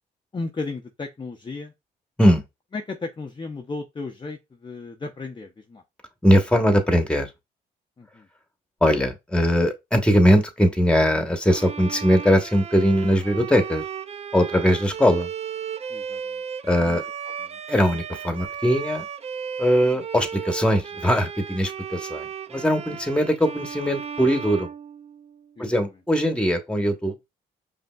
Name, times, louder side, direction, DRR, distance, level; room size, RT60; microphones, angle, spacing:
voice 1, 0.3-1.7 2.7-5.8 8.0-8.3 15.9-16.4 16.8-17.0 17.4-17.6 22.9-23.0 25.6-25.8 26.8-26.9, left 3 dB, 25° left, 0.6 m, -35 dB
voice 2, 6.2-7.3 8.8-13.8 14.3-15.3 16.7-17.0 17.7-19.0 19.6-24.7 25.6-27.2, equal, 5° left, 1.1 m, -20 dB
Bowed string instrument, 11.4-25.5, right 7 dB, 35° right, 0.4 m, -35 dB
5.2 x 2.7 x 2.3 m
supercardioid pair, 55°, 18 cm